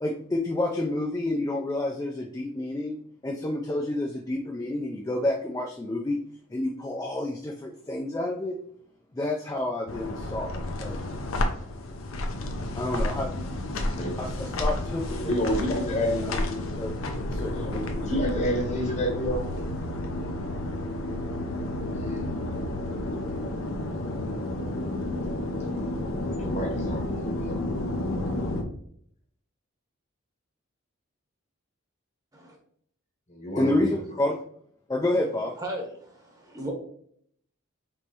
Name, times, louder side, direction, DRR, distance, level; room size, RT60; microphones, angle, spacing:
voice 1, 0.0-3.0 3.2-6.2 6.5-8.6 9.1-11.0 12.8-13.4 14.2-15.3 15.6-15.7 16.1-16.3 16.8-16.9 17.3-17.7 33.5-34.4 34.9-35.5, left 1 dB, 15° left, 1 dB, 0.3 m, -29 dB
sound 1, 9.9-28.6, left 1 dB, 75° left, 0.7 m, -31 dB
voice 2, 15.1-16.4 17.5-19.4 22.0-22.3 26.3-27.6 33.3-34.0, equal, 35° left, 2 dB, 1.0 m, -29 dB
voice 3, 35.6-36.7, right 1 dB, 15° right, 1 dB, 0.9 m, -36 dB
5.2 x 3.1 x 2.9 m, 0.66 s
head